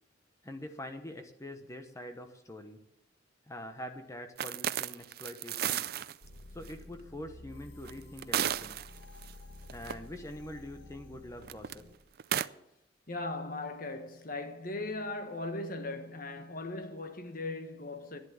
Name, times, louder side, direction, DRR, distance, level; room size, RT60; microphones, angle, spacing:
voice 1, 0.4-2.8 3.5-5.9 6.5-8.8 9.7-11.8, left 1 dB, 15° left, 0.9 m, -44 dB
Foley Natural Ice Breaking Sequence Stereo, 4.4-6.1 6.7-6.8 7.9-9.3 9.7-9.9 11.4-11.7 12.2-12.5, right 10 dB, 55° right, 0.4 m, -33 dB
sound 1, 6.2-12.0, left 2 dB, 65° left, 1.6 m, -51 dB
voice 2, 13.1-18.2, left 2 dB, 50° left, 1.3 m, -38 dB
11.5 x 10.0 x 7.2 m
head